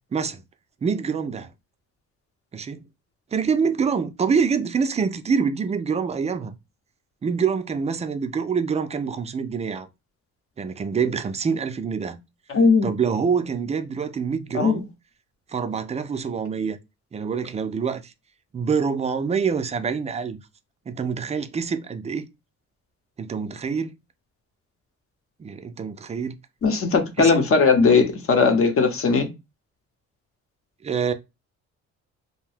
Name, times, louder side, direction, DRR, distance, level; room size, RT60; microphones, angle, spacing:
voice 1, 0.1-0.4 0.8-1.5 2.5-2.8 3.3-6.5 7.2-9.9 10.6-12.2 12.8-14.8 15.5-16.8 17.1-18.1 18.5-20.4 20.9-22.3 23.2-23.9 25.4-26.4 27.2-27.5 30.8-31.1, right 6 dB, 25° right, 0.3 m, -26 dB
voice 2, 12.5-12.9 14.5-14.8 26.6-29.3, left 4 dB, 45° left, 0.8 m, -18 dB
2.7 x 2.1 x 3.3 m
cardioid pair, 90°, 30 cm